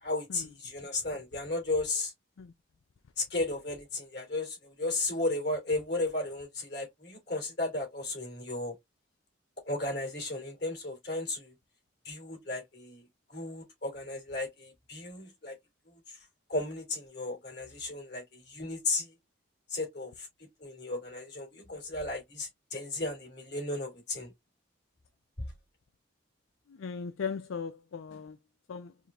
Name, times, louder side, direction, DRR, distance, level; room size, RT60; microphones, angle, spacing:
voice 1, 0.0-2.1 3.2-8.7 9.7-11.5 12.0-13.0 13.3-15.6 16.1-16.2 16.5-19.1 19.7-20.3 20.6-24.3, left 2 dB, 55° left, 2.8 m, -34 dB
voice 2, 26.8-28.4 28.7-28.9, left 6 dB, 80° left, 0.4 m, -38 dB
4.8 x 2.8 x 2.5 m
head